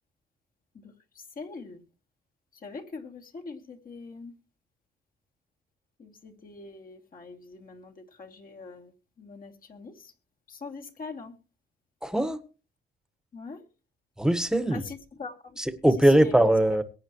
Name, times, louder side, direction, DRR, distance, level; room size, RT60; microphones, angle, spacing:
voice 1, 0.7-1.8 2.5-4.3 6.0-10.1 10.5-11.3 13.3-13.6 14.7-15.6 16.0-16.5, left 4 dB, 45° left, 2.7 m, -43 dB
voice 2, 12.0-12.4 14.2-14.8 15.6-16.8, right 1 dB, 5° right, 1.5 m, -21 dB
22.0 x 9.0 x 3.1 m
cardioid pair, 90°, 20 cm